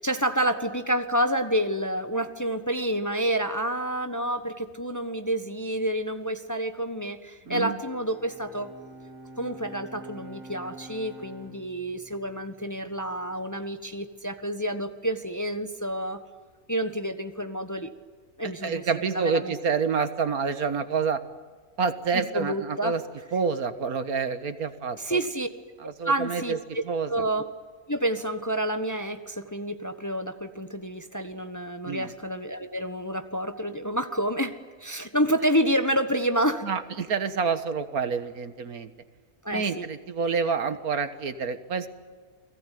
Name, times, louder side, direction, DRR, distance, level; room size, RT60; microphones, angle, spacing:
voice 1, 0.0-8.7 9.4-16.2 16.7-17.9 18.4-18.9 19.1-19.5 22.1-22.9 25.0-25.5 26.0-26.8 27.1-27.5 27.9-36.6 39.4-39.9, right 1 dB, 15° left, 8 dB, 1.2 m, -29 dB
voice 2, 7.5-7.8 18.6-21.2 21.8-23.0 23.3-25.2 25.8-26.6 26.9-27.2 31.9-32.1 36.6-38.9 39.5-41.9, right 5 dB, 70° right, 10 dB, 1.9 m, -28 dB
Bowed string instrument, 7.7-13.2, right 1 dB, 40° left, 7.2 m, -47 dB
30.0 x 20.0 x 9.3 m, 1.6 s
omnidirectional pair, 1.6 m